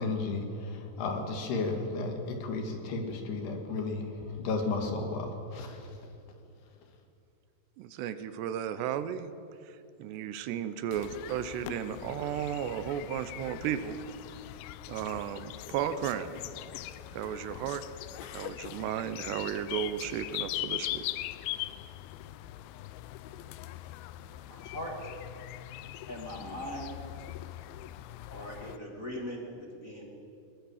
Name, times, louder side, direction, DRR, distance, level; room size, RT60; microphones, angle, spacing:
voice 1, 0.0-5.8, left 3 dB, 70° left, 4 dB, 4.0 m, -33 dB
voice 2, 7.8-9.3 9.7-14.0 14.9-16.3 17.1-17.8 18.2-21.1, right 9 dB, 80° right, 12 dB, 2.8 m, -34 dB
sound 1, 10.9-28.8, left 15 dB, 85° left, 2.1 m, -41 dB
voice 3, 24.3-24.9 26.1-27.1 28.3-30.1, equal, 30° left, 0 dB, 1.7 m, -40 dB
21.5 x 21.0 x 7.2 m, 2.7 s
omnidirectional pair, 5.0 m